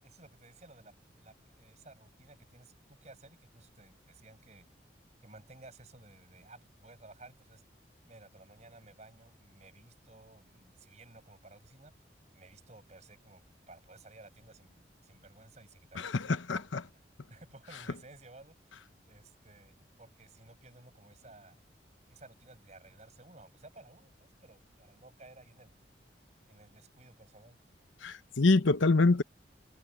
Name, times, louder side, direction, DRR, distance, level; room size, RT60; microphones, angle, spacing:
voice 1, 0.0-4.7 5.2-7.6 8.1-12.0 12.3-18.8 19.1-21.6 22.1-25.8 26.5-27.6, right 2 dB, 35° right, 5.6 m, -56 dB
voice 2, 16.0-16.8 28.0-29.2, left 3 dB, 85° left, 0.9 m, -26 dB
head